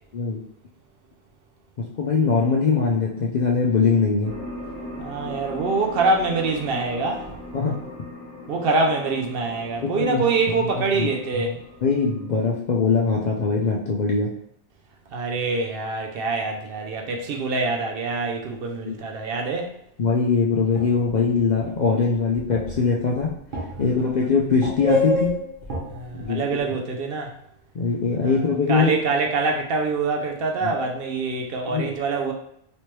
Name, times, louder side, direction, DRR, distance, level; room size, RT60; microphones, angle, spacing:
voice 1, 1.8-4.3 7.5-7.8 9.8-10.2 10.9-11.1 11.3-11.4 11.8-14.3 18.8-18.9 20.0-23.3 23.8-25.4 26.1-26.5 27.7-28.9 30.6-30.7 31.7-31.9, left 4 dB, 55° left, -3 dB, 0.5 m, -22 dB
sound 1, 4.2-12.3, left 1 dB, 10° left, 1.2 m, -39 dB
voice 2, 5.0-7.3 8.5-11.6 15.1-19.7 25.8-27.3 28.2-28.4 28.7-32.3, right 3 dB, 65° right, 1 dB, 0.7 m, -25 dB
sound 2, 20.8-24.1 24.5-26.2, left 2 dB, 45° right, 1.1 m, -28 dB
3.2 x 3.0 x 3.0 m, 0.75 s
omnidirectional pair, 1.2 m